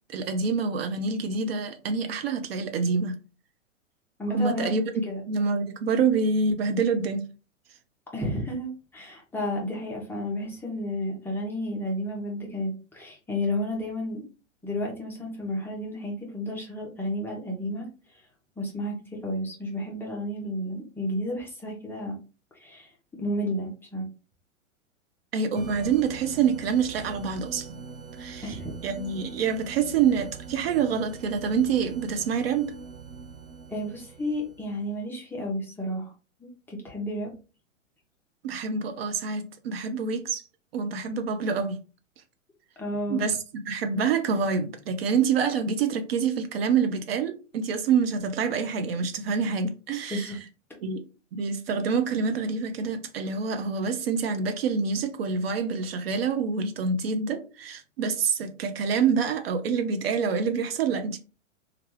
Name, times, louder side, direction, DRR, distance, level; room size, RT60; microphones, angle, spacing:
voice 1, 0.1-3.2 4.3-4.8 5.3-7.2 25.3-27.8 28.2-28.6 28.8-32.8 38.4-40.4 40.7-41.8 43.1-50.4 50.8-51.0 51.3-61.2, right 5 dB, 50° right, 0.5 m, -26 dB
voice 2, 4.2-4.8 5.1-5.2 8.1-14.2 14.6-17.9 18.6-18.9 19.2-22.1 22.5-22.9 23.2-24.1 28.4-28.7 33.7-36.1 36.4-37.3 42.8-43.2 50.1-50.4, equal, 5° left, 0.6 m, -32 dB
sound 1, 25.6-34.9, right 5 dB, 85° right, 0.9 m, -42 dB
3.2 x 2.3 x 3.1 m
hypercardioid pair, 115°, 39 cm